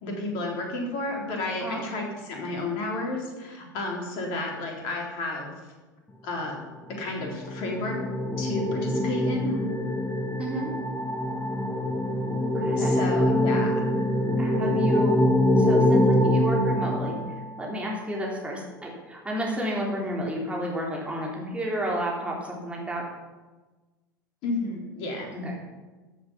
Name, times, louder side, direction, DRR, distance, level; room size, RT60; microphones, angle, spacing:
voice 1, 0.0-5.5 6.2-6.6 6.9-7.9 8.4-9.6 12.8-13.8 24.4-25.3, left 2 dB, 50° left, 0 dB, 3.8 m, -31 dB
sound 1, 7.0-17.7, left 1 dB, 15° left, 2.2 m, -24 dB
voice 2, 10.4-10.7 12.4-13.0 14.4-15.3 15.6-17.2 17.6-23.0 25.3-25.5, equal, 10° right, -3 dB, 3.4 m, -31 dB
14.0 x 7.6 x 6.0 m, 1.2 s
figure-of-eight pair, 75°, 11 cm